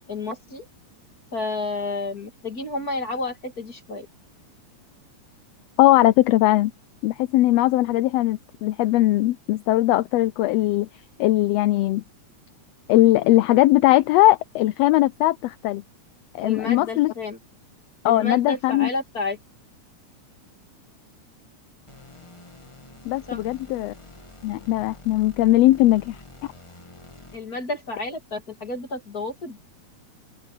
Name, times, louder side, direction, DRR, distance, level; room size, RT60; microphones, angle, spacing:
voice 1, 0.1-0.6 1.3-4.1 16.4-17.4 18.0-19.4 23.3-23.4 27.3-29.6, left 3 dB, 35° left, 2.5 m, -30 dB
voice 2, 5.8-6.7 7.0-10.9 11.2-12.0 12.9-15.8 16.3-17.1 18.0-18.9 23.0-23.9 24.4-26.2, left 16 dB, 85° left, 1.4 m, -19 dB
sound 1, 21.9-27.6, left 2 dB, 15° left, 1.1 m, -47 dB
open air
omnidirectional pair, 3.4 m